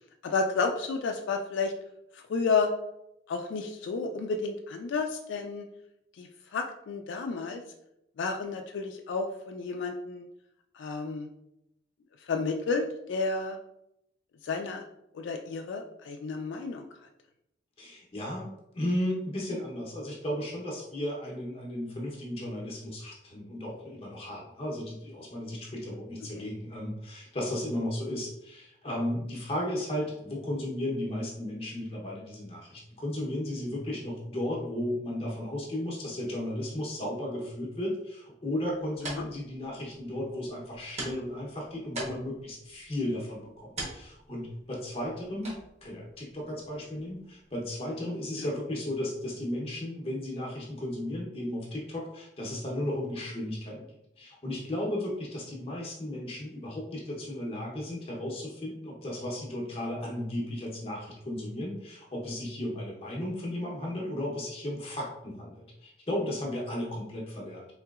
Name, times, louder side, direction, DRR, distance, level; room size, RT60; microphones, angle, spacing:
voice 1, 0.2-1.7 2.1-2.7 3.3-5.7 6.2-7.6 8.2-10.2 10.7-11.3 12.2-13.6 14.4-14.8 15.1-16.9 26.4-26.5 39.2-39.3 48.4-48.5, left 4 dB, 85° left, 3 dB, 0.3 m, -31 dB
voice 2, 17.8-53.9 54.2-67.7, left 1 dB, 30° left, -2 dB, 0.6 m, -35 dB
sound 1, 38.6-47.8, right 1 dB, 35° right, 0.9 m, -45 dB
3.8 x 2.8 x 2.3 m, 0.82 s
head